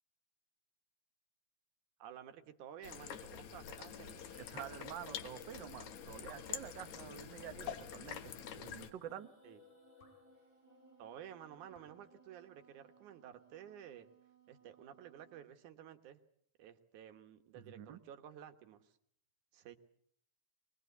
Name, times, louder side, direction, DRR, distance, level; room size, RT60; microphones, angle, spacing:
voice 1, 2.0-4.2 9.4-9.6 11.0-14.1 14.5-16.2 16.6-18.9 19.5-19.8, right 10 dB, 75° right, 8 dB, 2.9 m, -53 dB
sound 1, 2.8-8.9, left 9 dB, 70° left, 2.6 m, -47 dB
sound 2, 4.1-12.5, left 2 dB, 20° left, 3.7 m, -62 dB
voice 2, 4.3-9.3 17.5-18.0, right 10 dB, 55° right, 9 dB, 1.3 m, -48 dB
Wind instrument woodwind instrument, 10.4-15.6, right 8 dB, 40° right, 3.9 m, -67 dB
23.5 x 21.5 x 8.2 m, 0.65 s
omnidirectional pair, 3.5 m